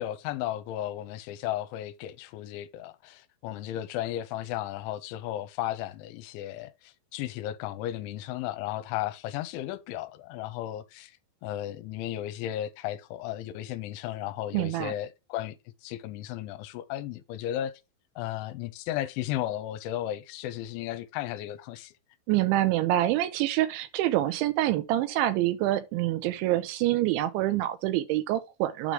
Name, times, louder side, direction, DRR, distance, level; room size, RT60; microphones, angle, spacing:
voice 1, 0.0-11.2 11.4-15.6 15.8-17.7 18.2-21.9, left 13 dB, 85° left, 3.0 m, -34 dB
voice 2, 14.5-14.9 22.3-28.9, right 14 dB, 80° right, 3.0 m, -26 dB
9.0 x 3.9 x 4.7 m
omnidirectional pair, 5.5 m